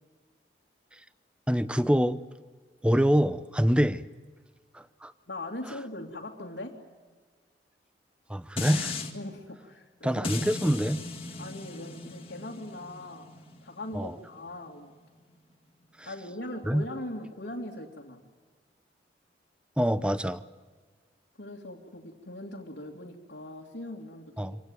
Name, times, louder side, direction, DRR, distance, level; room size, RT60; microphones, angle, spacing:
voice 1, 1.5-2.2 2.8-4.1 4.7-5.1 8.3-9.0 10.0-11.0 13.9-14.1 16.0-16.1 16.7-16.9 19.8-20.4 24.4-24.6, equal, 5° right, 13 dB, 0.7 m, -25 dB
voice 2, 5.3-6.8 9.1-10.4 11.4-13.3 13.6-14.9 16.0-18.2 21.4-24.6, left 1 dB, 80° left, -4 dB, 2.8 m, -40 dB
sound 1, 8.6-9.1 10.2-15.4 15.8-15.9, left 3 dB, 30° left, 2.3 m, -38 dB
26.0 x 17.5 x 9.2 m, 1.5 s
head